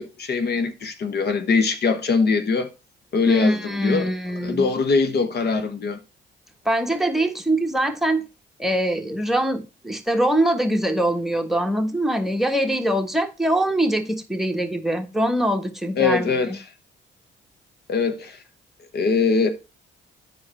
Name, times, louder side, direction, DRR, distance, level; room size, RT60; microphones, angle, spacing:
voice 1, 0.0-2.7 3.1-4.1 4.4-6.0 16.0-16.6 17.9-18.4 18.9-19.5, left 4 dB, 55° left, 1.0 m, -22 dB
voice 2, 3.3-4.7 6.6-8.2 8.6-16.6, right 1 dB, ahead, 1.4 m, -23 dB
9.2 x 4.8 x 4.3 m
cardioid pair, 90°, 20 cm